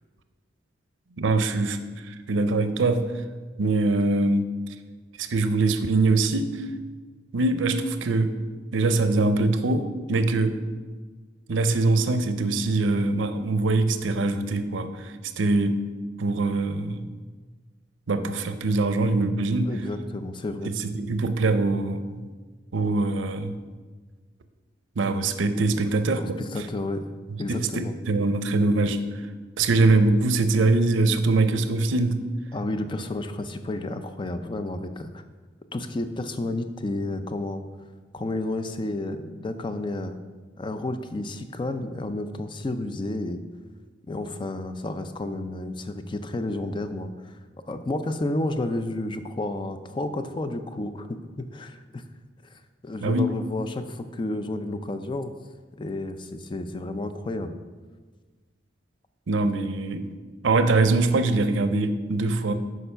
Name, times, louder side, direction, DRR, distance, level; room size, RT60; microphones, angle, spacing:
voice 1, 1.2-3.1 3.6-4.5 5.2-6.6 7.3-8.4 8.7-10.6 11.5-15.8 16.2-17.0 18.1-19.7 20.8-22.2 22.7-23.5 25.0-26.4 27.5-29.0 29.6-32.2 53.0-53.3 59.3-60.1 60.4-62.5, right 3 dB, 90° right, 10 dB, 0.6 m, -23 dB
voice 2, 19.6-20.7 25.8-25.9 26.2-27.0 27.4-27.9 32.5-35.2 35.7-37.6 38.1-40.2 40.6-43.4 44.1-47.4 47.7-52.0 52.5-55.3 55.8-57.5, left 2 dB, 25° left, 9 dB, 0.4 m, -31 dB
6.8 x 4.9 x 5.5 m, 1.4 s
head